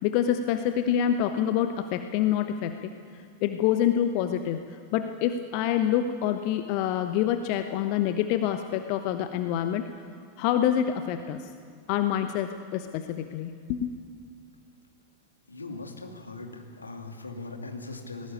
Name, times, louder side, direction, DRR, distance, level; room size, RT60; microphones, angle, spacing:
voice 1, 0.0-9.9 10.4-11.5 11.9-14.0, left 10 dB, 45° left, 8 dB, 1.0 m, -27 dB
voice 2, 15.5-18.3, left 3 dB, 80° left, 3 dB, 2.5 m, -40 dB
20.0 x 17.0 x 8.7 m, 2.2 s
figure-of-eight pair, 90°, 0 cm